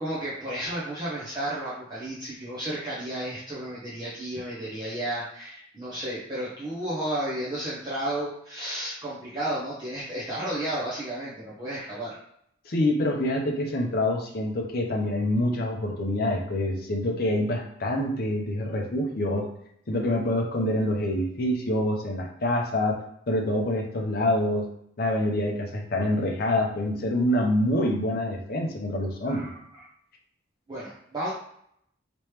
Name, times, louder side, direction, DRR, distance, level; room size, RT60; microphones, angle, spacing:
voice 1, 0.0-12.2 29.2-29.9 30.7-31.3, right 1 dB, 20° right, -9 dB, 0.7 m, -33 dB
voice 2, 12.7-19.5 19.9-23.0 23.3-24.7 25.0-29.5, left 1 dB, 50° left, 1 dB, 0.6 m, -26 dB
3.0 x 3.0 x 3.2 m, 0.72 s
head